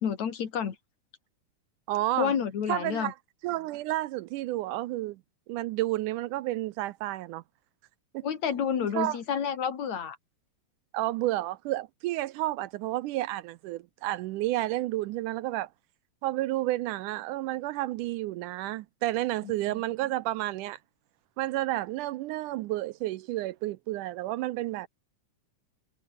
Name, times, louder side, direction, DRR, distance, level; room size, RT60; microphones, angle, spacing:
voice 1, 0.0-0.8 2.2-3.1 8.2-10.2, left 7 dB, 60° left, 3.5 m, -29 dB
voice 2, 1.9-2.3 2.7-3.2 3.4-5.2 5.5-7.4 8.1-8.3 8.9-9.2 10.9-15.7 16.2-20.8 21.4-24.9, right 16 dB, 80° right, 2.1 m, -31 dB
omnidirectional pair, 3.8 m